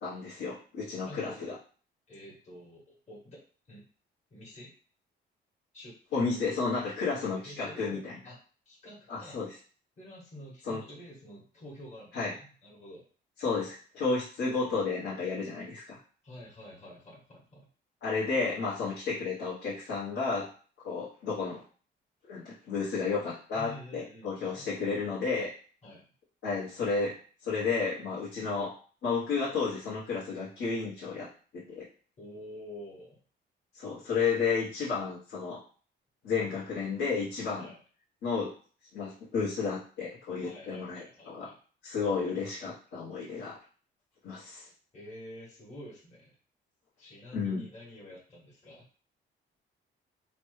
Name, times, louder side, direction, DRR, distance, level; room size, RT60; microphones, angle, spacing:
voice 1, 0.0-1.5 6.1-8.1 9.1-9.5 10.7-10.8 12.1-12.3 13.4-16.0 18.0-20.5 20.8-21.6 22.3-25.5 26.4-27.1 27.4-28.7 29.0-31.9 33.7-35.6 36.2-37.7 38.2-38.5 38.9-41.5 41.8-43.6 44.2-44.7 47.3-47.7, left 4 dB, 70° left, -9 dB, 1.1 m, -32 dB
voice 2, 1.1-1.5 2.1-3.4 3.7-3.8 4.3-4.7 5.7-6.4 7.3-8.4 8.6-9.4 10.0-13.0 16.2-17.7 23.5-24.7 25.8-26.0 32.2-33.2 37.6-37.8 40.4-41.6 42.2-42.3 44.9-46.3 47.0-48.8, left 1 dB, 35° left, -7 dB, 1.3 m, -48 dB
3.0 x 2.2 x 3.2 m, 0.41 s
cardioid pair, 90°, 20 cm